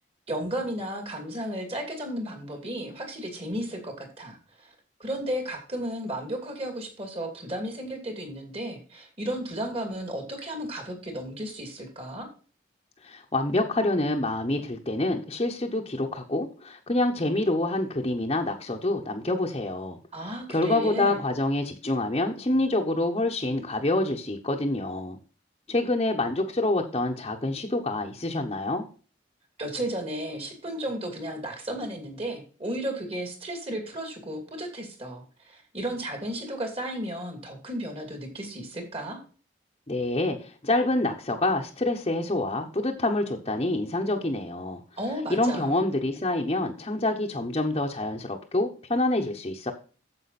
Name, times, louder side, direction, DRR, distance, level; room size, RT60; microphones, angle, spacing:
voice 1, 0.3-4.7 5.0-12.3 20.1-21.2 29.6-39.2 45.0-45.8, right 1 dB, 30° right, 4 dB, 2.6 m, -34 dB
voice 2, 13.0-25.2 25.7-28.8 39.9-44.8 45.3-49.7, left 2 dB, 30° left, 0 dB, 1.0 m, -27 dB
9.5 x 7.4 x 4.2 m, 0.38 s
head